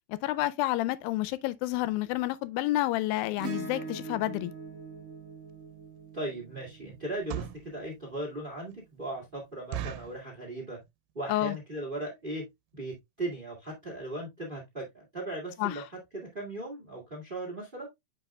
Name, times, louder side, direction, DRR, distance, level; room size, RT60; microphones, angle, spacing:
voice 1, 0.1-4.5 11.3-11.6 15.6-15.8, left 16 dB, 85° left, 2.3 m, -29 dB
Acoustic guitar / Strum, 3.4-8.0 9.8-9.9, right 3 dB, 60° right, 0.8 m, -42 dB
sound 1, 5.5-5.6 6.1-6.3 7.0-7.7 8.3-8.4 8.7-8.8 9.1-9.2 9.7-10.2 10.8-11.1 11.4-11.5 11.7-12.0 12.5-12.6 12.8-13.0 13.3-13.4 13.6-13.7, right 10 dB, 80° right, 2.3 m, -38 dB
voice 2, 6.1-10.8 11.1-12.4 12.7-15.8 16.1-17.9, right 1 dB, 20° right, 1.4 m, -38 dB
9.1 x 5.2 x 2.2 m
omnidirectional pair, 4.1 m